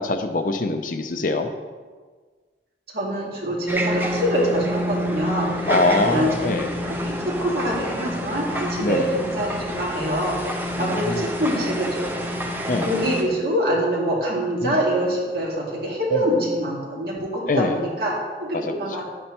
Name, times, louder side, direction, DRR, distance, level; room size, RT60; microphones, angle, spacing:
voice 1, 0.0-1.5 5.7-6.7 8.8-9.0 10.8-11.3 12.7-12.9 14.6-14.8 17.5-17.8 18.5-18.8, left 2 dB, 50° left, 6 dB, 0.6 m, -23 dB
voice 2, 2.9-6.5 6.8-12.2 12.8-19.1, equal, 60° right, -3 dB, 2.2 m, -25 dB
sound 1, 3.7-13.2, equal, 10° right, 0.7 m, -28 dB
10.5 x 8.6 x 3.0 m, 1.5 s
head